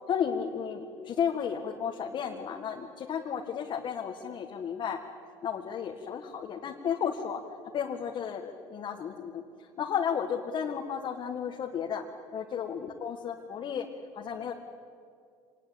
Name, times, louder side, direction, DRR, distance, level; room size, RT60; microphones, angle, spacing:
voice 1, 0.1-5.0 5.4-7.4 7.7-12.0 12.3-13.9 14.1-14.5, left 7 dB, 50° left, 1 dB, 1.9 m, -33 dB
25.5 x 20.0 x 8.9 m, 2.4 s
supercardioid pair, 90°, 10 cm